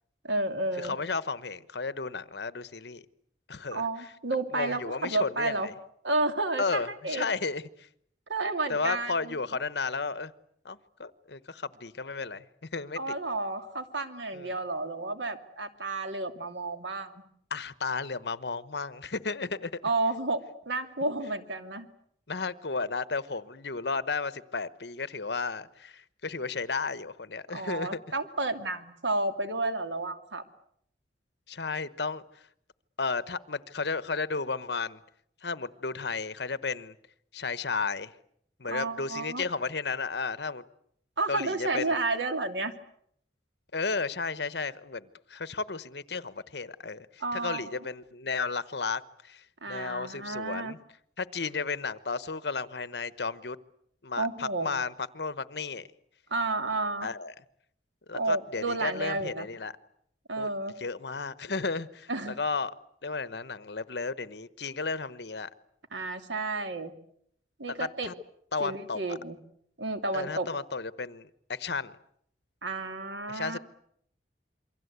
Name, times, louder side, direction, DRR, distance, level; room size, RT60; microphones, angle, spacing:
voice 1, 0.2-1.0 3.7-5.7 6.0-7.3 8.3-9.4 13.0-17.2 19.8-21.9 27.5-30.4 38.7-39.4 41.2-42.7 47.2-47.7 49.6-50.7 54.2-54.7 56.3-57.1 58.1-59.5 60.3-60.7 62.1-62.4 65.9-66.9 67.6-68.1 68.6-69.4 69.8-70.5 72.6-73.6, right 2 dB, 90° right, 7 dB, 2.7 m, -31 dB
voice 2, 0.8-3.0 3.5-3.8 4.5-5.7 6.6-7.9 8.7-10.3 10.6-12.4 12.7-13.0 14.3-14.5 17.5-19.7 22.3-28.0 31.5-32.5 33.0-35.0 35.4-36.9 37.3-38.1 38.6-40.6 41.3-42.0 43.7-50.8 51.2-53.6 54.0-55.9 57.0-57.3 58.1-59.7 60.4-62.7 63.0-65.5 67.8-68.1 68.5-69.2 70.1-72.0 73.3-73.6, left 4 dB, 65° left, 15 dB, 1.1 m, -33 dB
27.5 x 24.0 x 8.2 m, 0.71 s
head